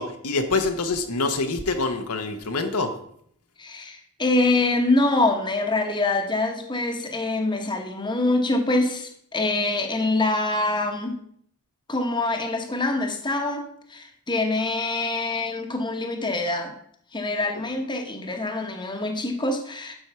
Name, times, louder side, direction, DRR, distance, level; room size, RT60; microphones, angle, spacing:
voice 1, 0.0-3.0, left 3 dB, 85° left, 5 dB, 1.2 m, -25 dB
voice 2, 3.6-11.2 11.9-13.6 13.9-16.7 17.1-19.9, left 2 dB, 20° left, 4 dB, 1.1 m, -25 dB
11.5 x 4.7 x 5.7 m, 0.67 s
head